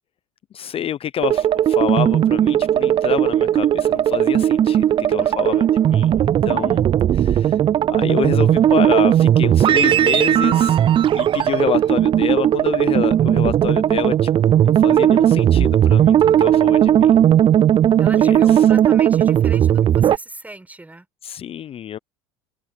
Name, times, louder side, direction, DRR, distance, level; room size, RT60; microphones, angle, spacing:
voice 1, 0.5-6.8 7.1-7.6 7.9-10.8 11.1-17.2 18.1-18.7 21.2-22.0, left 10 dB, 40° left, 0.7 m, -27 dB
sound 1, 1.2-20.2, right 10 dB, 35° right, 0.4 m, -16 dB
voice 2, 5.2-5.7 18.0-21.1, right 2 dB, 10° right, 5.9 m, -38 dB
open air
hypercardioid pair, 75°, 15 cm